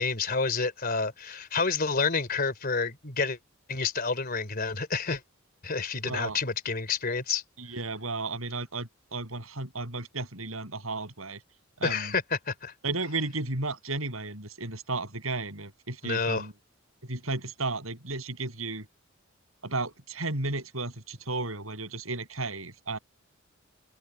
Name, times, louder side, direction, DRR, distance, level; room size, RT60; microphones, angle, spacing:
voice 1, 0.0-3.4 3.7-5.2 5.6-7.4 11.8-12.7 16.0-16.5, left 4 dB, 45° left, 3.5 m, -29 dB
voice 2, 6.0-6.4 7.6-11.4 11.8-12.1 12.8-16.5 17.1-18.8 19.6-23.0, right 3 dB, 85° right, 7.4 m, -34 dB
open air
head